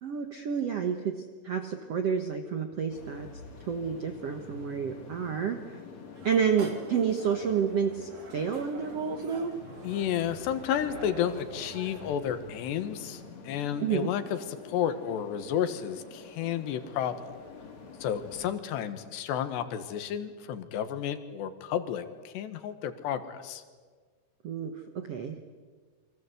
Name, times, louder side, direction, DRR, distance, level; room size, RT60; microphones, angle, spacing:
voice 1, 0.0-3.3 3.6-5.8 6.2-9.6 13.8-14.1 24.4-25.4, right 7 dB, 85° right, 6 dB, 1.3 m, -30 dB
sound 1, 2.9-18.5, left 5 dB, 40° left, 4.0 m, -48 dB
sound 2, 6.2-12.2, right 3 dB, 45° right, 4.2 m, -46 dB
voice 2, 9.8-17.3 18.0-23.6, left 9 dB, 75° left, 11 dB, 3.6 m, -32 dB
28.5 x 24.5 x 8.2 m, 1.5 s
omnidirectional pair, 5.0 m